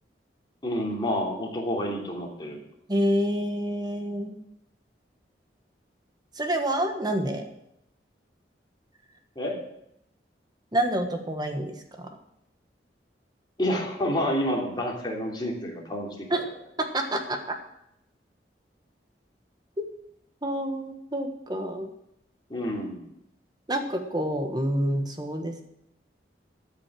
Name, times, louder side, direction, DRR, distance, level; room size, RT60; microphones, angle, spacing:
voice 1, 0.6-2.6 9.3-9.6 13.6-16.4 22.5-23.0, equal, 25° left, -2 dB, 3.0 m, -29 dB
voice 2, 2.9-4.4 6.4-7.4 10.7-12.1 16.3-16.5 16.9-17.6 20.4-21.9 23.7-25.6, right 1 dB, 25° right, 5 dB, 1.3 m, -28 dB
13.5 x 6.3 x 7.5 m, 0.78 s
head